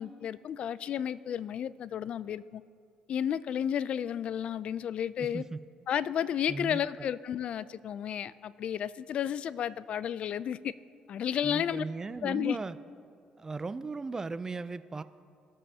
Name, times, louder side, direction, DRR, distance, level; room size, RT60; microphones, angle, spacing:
voice 1, 0.0-2.6 3.1-5.4 5.9-10.7 11.1-11.8 12.2-12.6, left 9 dB, 55° left, 17 dB, 0.3 m, -32 dB
voice 2, 5.2-5.6 6.5-7.1 11.4-12.8 13.4-15.0, right 3 dB, 25° right, 14 dB, 0.3 m, -37 dB
19.0 x 7.5 x 2.8 m, 2.2 s
cardioid pair, 95°, 2 cm